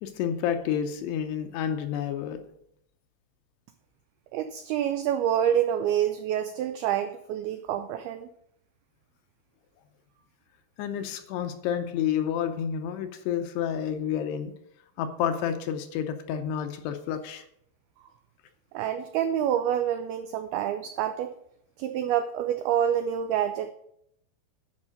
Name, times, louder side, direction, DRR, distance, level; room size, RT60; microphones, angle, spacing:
voice 1, 0.0-2.4 10.8-14.5 15.0-17.4, left 9 dB, 80° left, 7 dB, 2.7 m, -30 dB
voice 2, 4.3-8.3 18.7-21.3 21.8-23.7, right 10 dB, 85° right, 8 dB, 2.2 m, -27 dB
11.0 x 5.5 x 6.5 m, 0.75 s
omnidirectional pair, 5.1 m